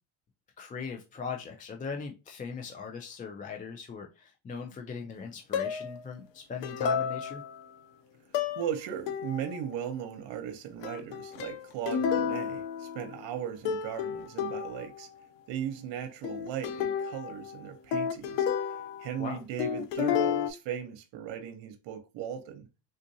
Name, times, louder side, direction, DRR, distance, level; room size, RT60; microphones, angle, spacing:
voice 1, 0.6-7.4 19.2-19.4, left 5 dB, 20° left, 0.3 m, -39 dB
sound 1, 5.5-6.0 6.6-7.6 8.3-8.7 9.1-9.6 10.8-13.4 13.7-15.0 16.2-19.3 19.6-20.5, left 7 dB, 70° left, 0.6 m, -31 dB
voice 2, 8.6-15.1 15.5-18.5 19.0-22.7, right 9 dB, 70° right, 0.8 m, -37 dB
3.7 x 2.5 x 2.7 m
cardioid pair, 105°, 46 cm